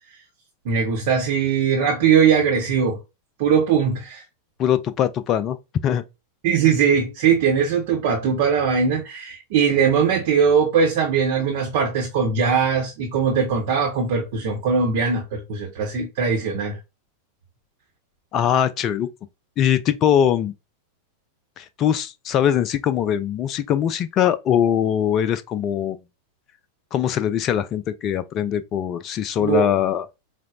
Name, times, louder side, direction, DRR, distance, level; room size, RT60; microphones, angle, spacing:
voice 1, 0.6-3.0 3.4-4.2 6.4-16.8 29.4-29.7, right 6 dB, 50° right, 0.8 m, -20 dB
voice 2, 4.6-5.6 5.8-6.0 18.3-19.1 19.6-20.5 21.6-26.0 26.9-30.1, left 9 dB, 35° left, 0.3 m, -21 dB
4.9 x 2.0 x 2.2 m
figure-of-eight pair, 90°, 0 cm